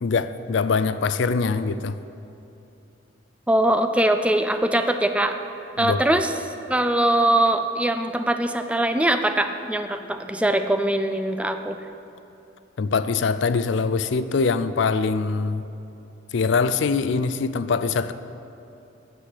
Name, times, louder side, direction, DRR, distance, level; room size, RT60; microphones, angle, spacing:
voice 1, 0.0-2.0 5.8-6.0 12.8-15.6 16.3-18.1, left 4 dB, 65° left, 12 dB, 0.4 m, -23 dB
voice 2, 3.5-5.4 5.8-6.3 6.7-11.8, right 1 dB, 5° right, 8 dB, 0.4 m, -22 dB
9.2 x 7.7 x 8.2 m, 2.9 s
head